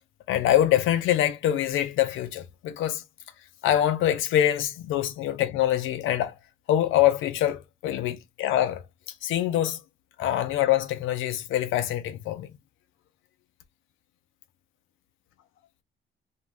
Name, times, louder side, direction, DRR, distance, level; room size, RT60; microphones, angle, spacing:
voice 1, 0.3-3.0 3.6-6.3 6.7-8.8 9.2-9.8 10.2-12.5, left 12 dB, 85° left, 0.4 m, -24 dB
2.4 x 2.2 x 3.0 m
cardioid pair, 90°, 20 cm